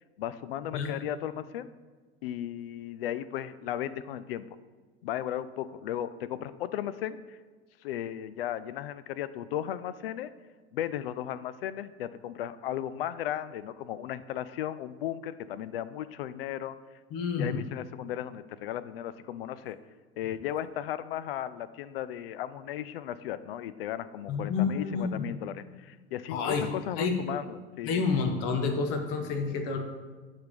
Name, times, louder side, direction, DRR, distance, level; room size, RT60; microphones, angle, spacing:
voice 1, 0.2-1.7 2.2-4.6 5.0-7.4 7.8-10.3 10.7-16.8 17.4-19.8 20.2-27.9, left 11 dB, 70° left, 15 dB, 0.4 m, -35 dB
voice 2, 17.1-17.6 24.3-25.3 26.3-26.7 26.9-27.2 27.8-29.8, left 5 dB, 55° left, 5 dB, 1.1 m, -29 dB
7.9 x 3.6 x 5.1 m, 1.4 s
figure-of-eight pair, 75°, 30 cm